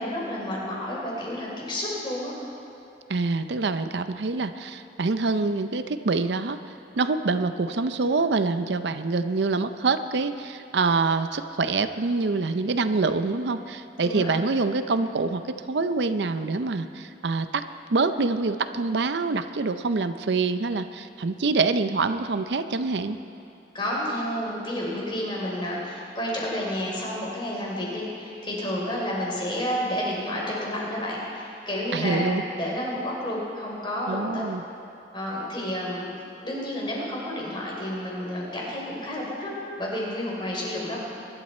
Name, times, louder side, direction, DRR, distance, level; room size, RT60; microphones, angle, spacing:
voice 1, 0.0-2.3 14.0-14.4 23.7-34.4 35.1-36.1 36.4-39.5 39.8-41.0, left 1 dB, 25° left, -4 dB, 3.9 m, -30 dB
voice 2, 3.1-6.6 7.0-17.6 17.9-23.2 31.9-32.4 34.1-34.6, right 3 dB, 75° right, 10 dB, 0.6 m, -25 dB
23.5 x 11.5 x 4.3 m, 2.8 s
head